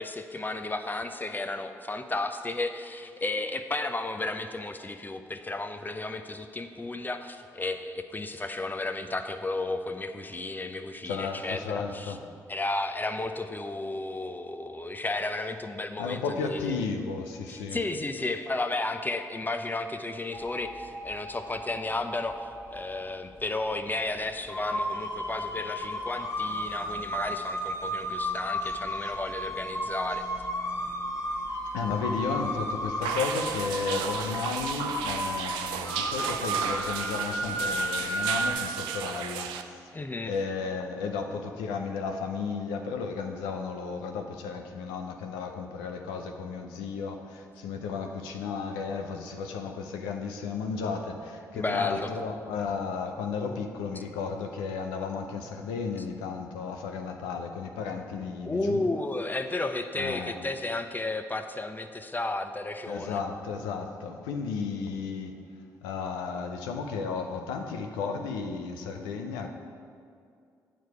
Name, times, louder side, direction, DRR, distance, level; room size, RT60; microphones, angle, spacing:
voice 1, 0.0-12.2 12.5-16.8 17.5-30.2 39.9-40.3 51.5-52.1 58.4-63.2, left 2 dB, 25° left, 8 dB, 0.6 m, -33 dB
voice 2, 11.0-12.2 16.0-17.8 30.7-30.9 31.7-40.0 40.2-58.8 60.0-60.4 62.9-65.4 65.8-69.5, left 5 dB, 90° left, 4 dB, 0.5 m, -34 dB
sound 1, 20.3-22.9 23.8-23.9 24.5-38.5, equal, 40° left, 1.6 m, -33 dB
sound 2, 33.0-39.6, right 8 dB, 85° right, 0.4 m, -34 dB
9.0 x 4.9 x 4.7 m, 2.3 s
hypercardioid pair, 45°, 8 cm